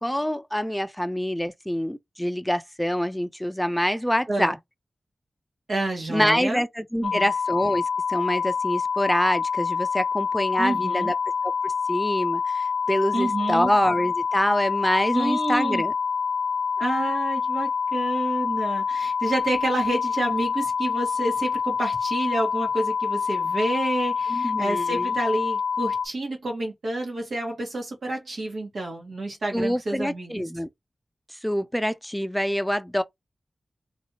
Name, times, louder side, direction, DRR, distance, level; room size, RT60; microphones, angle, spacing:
voice 1, 0.0-4.6 6.1-11.1 11.6-15.9 24.3-25.1 29.5-30.7 31.3-33.0, equal, 5° left, 0.4 m, -26 dB
voice 2, 5.7-6.6 7.0-7.3 10.6-11.1 13.1-13.7 15.1-15.8 16.8-30.5, right 2 dB, 90° right, 1.6 m, -29 dB
sound 1, 7.0-26.1, left 6 dB, 80° left, 0.4 m, -26 dB
3.1 x 2.7 x 2.7 m
cardioid pair, 55°, 0 cm